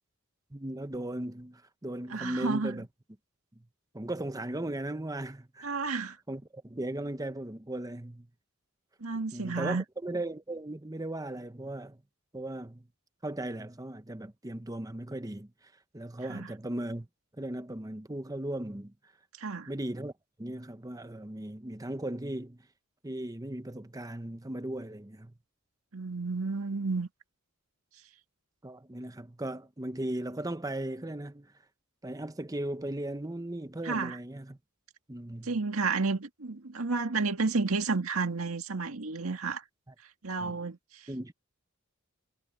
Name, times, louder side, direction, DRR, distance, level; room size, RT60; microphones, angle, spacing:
voice 1, 0.5-2.9 3.9-5.9 6.3-8.3 9.3-12.0 12.3-12.8 13.2-15.5 15.9-17.1 17.4-18.9 19.7-20.1 20.4-22.6 23.0-25.3 28.6-31.5 32.0-34.6 35.1-35.5 40.4-40.6 41.1-41.3, right 1 dB, 15° right, 0.8 m, -37 dB
voice 2, 2.1-2.8 5.6-6.2 9.0-9.8 16.3-16.5 19.4-19.7 25.9-27.1 33.8-34.2 35.4-39.6 40.2-41.1, right 4 dB, 90° right, 1.8 m, -31 dB
head